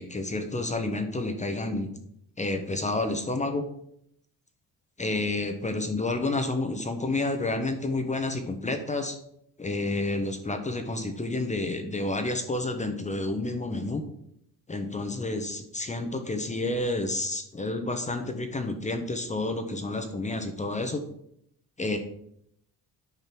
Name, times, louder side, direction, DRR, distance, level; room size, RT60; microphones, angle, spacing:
voice 1, 0.0-1.9 2.4-3.6 5.0-9.2 9.6-14.0 14.7-21.0 21.8-22.0, left 2 dB, 20° left, 6 dB, 1.1 m, -30 dB
9.5 x 5.3 x 6.0 m, 0.72 s
cardioid pair, 120°, 36 cm